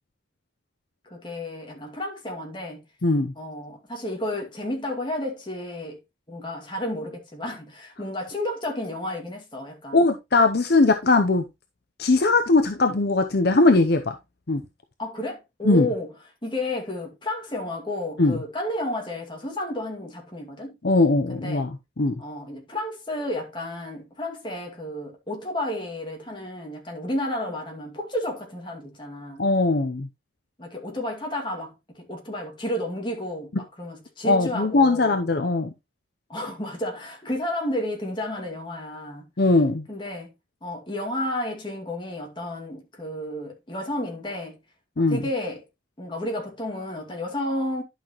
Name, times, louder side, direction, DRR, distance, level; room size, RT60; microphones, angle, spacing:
voice 1, 1.1-2.8 3.3-6.0 6.3-10.0 15.0-16.1 16.4-20.7 21.3-21.7 22.2-29.5 30.6-35.1 36.3-39.3 39.9-40.3 40.6-44.6 45.0-45.6 46.0-47.8, left 1 dB, 25° left, 2.3 m, -32 dB
voice 2, 3.0-3.3 9.9-11.4 12.0-14.1 14.5-14.6 15.6-15.9 18.2-18.4 20.8-22.2 29.4-30.1 34.2-35.7 39.4-39.8 45.0-45.2, left 3 dB, 55° left, 0.7 m, -20 dB
11.0 x 5.9 x 3.1 m
head